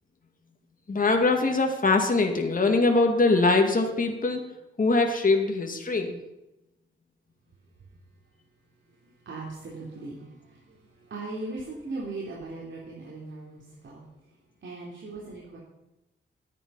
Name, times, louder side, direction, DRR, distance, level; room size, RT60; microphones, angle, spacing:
voice 1, 0.9-4.5 4.8-6.2, left 3 dB, 40° left, 3 dB, 2.2 m, -22 dB
voice 2, 8.9-14.0 14.6-15.6, right 2 dB, 65° right, -4 dB, 3.4 m, -39 dB
13.5 x 11.0 x 5.7 m, 0.94 s
cardioid pair, 90°, 21 cm